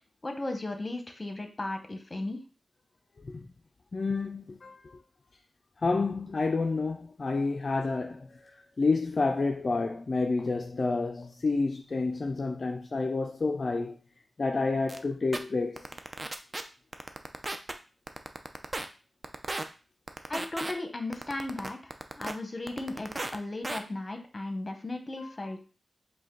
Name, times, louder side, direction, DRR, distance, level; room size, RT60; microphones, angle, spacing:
voice 1, 0.2-2.4 20.3-21.9 22.2-25.6, left 2 dB, 35° left, 0.9 m, -36 dB
voice 2, 3.9-5.0 5.8-8.5 8.8-14.0 14.4-15.9 25.2-25.3, left 3 dB, 50° left, 0.3 m, -29 dB
sound 1, 14.9-15.0 15.3-15.4 15.8-16.6 16.9-17.7 18.1-18.9 19.2-19.6 20.1-20.7 21.1-22.3 22.7-23.4 23.6-23.8, right 2 dB, 35° right, 0.5 m, -34 dB
5.0 x 2.2 x 3.8 m
cardioid pair, 65°, 0 cm